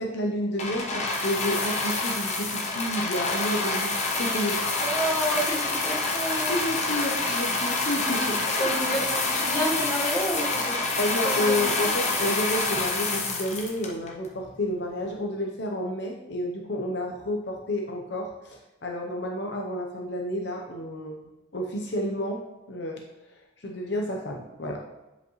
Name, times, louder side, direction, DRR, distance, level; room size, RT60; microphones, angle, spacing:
voice 1, 0.0-4.6 6.5-8.7 11.0-21.2 21.5-22.4 22.7-23.0 23.6-24.8, left 1 dB, 60° left, 1 dB, 0.7 m, -30 dB
sound 1, 0.6-14.3 15.0-15.1, left 3 dB, 35° left, 1.0 m, -27 dB
voice 2, 4.8-6.6 8.6-10.8 11.2-11.9, right 1 dB, 20° left, -4 dB, 1.4 m, -30 dB
7.9 x 5.1 x 3.1 m, 1.1 s
head